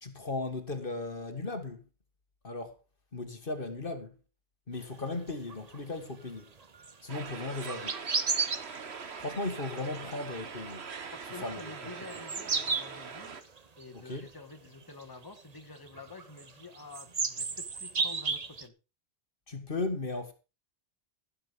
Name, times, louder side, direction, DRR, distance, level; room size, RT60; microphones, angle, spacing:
voice 1, 0.0-1.8 2.4-2.8 3.1-4.1 4.7-6.5 7.0-8.0 9.2-10.9 11.4-11.7 13.9-14.3 19.5-20.3, left 3 dB, 55° left, 1.8 m, -36 dB
sound 1, 5.3-5.8 6.6-9.4 9.7-10.1 10.4-11.6 12.1-13.8 14.2-14.3 14.7-15.4 15.8-18.7, right 5 dB, 40° right, 1.0 m, -33 dB
sound 2, 7.1-13.4, right 5 dB, 75° right, 1.5 m, -43 dB
voice 2, 11.1-13.4 13.8-18.7, left 3 dB, 20° left, 1.7 m, -48 dB
15.5 x 7.8 x 5.2 m
omnidirectional pair, 1.1 m